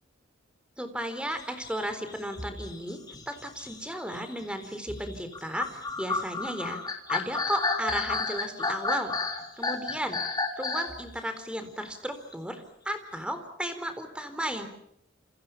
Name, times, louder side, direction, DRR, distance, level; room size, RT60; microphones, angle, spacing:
voice 1, 0.8-3.0 3.3-6.8 7.1-9.1 9.6-14.7, equal, 5° right, 8 dB, 3.9 m, -34 dB
sound 1, 1.3-11.0, left 3 dB, 20° left, 3.8 m, -32 dB
29.5 x 29.0 x 5.9 m, 0.74 s
head